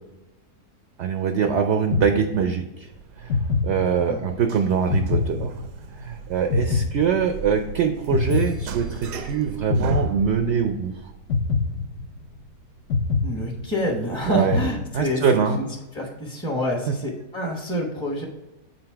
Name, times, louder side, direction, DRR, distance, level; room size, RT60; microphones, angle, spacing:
voice 1, 1.0-2.9 3.2-3.4 3.6-5.5 5.9-11.1 14.3-14.6 14.9-15.6, right 6 dB, 65° right, 6 dB, 0.6 m, -23 dB
sound 1, 1.9-2.8 3.3-4.4 4.9-6.1 6.5-7.7 8.1-9.3 9.7-10.8 11.3-12.5 12.9-14.1 14.5-15.4, left 4 dB, 65° left, 0.8 m, -26 dB
sound 2, 2.9-15.1, right 8 dB, 90° right, 1.2 m, -40 dB
voice 2, 13.2-15.2 15.5-15.7 15.9-18.3, equal, 5° left, -1 dB, 0.6 m, -27 dB
6.8 x 4.0 x 4.5 m, 1.0 s
omnidirectional pair, 1.7 m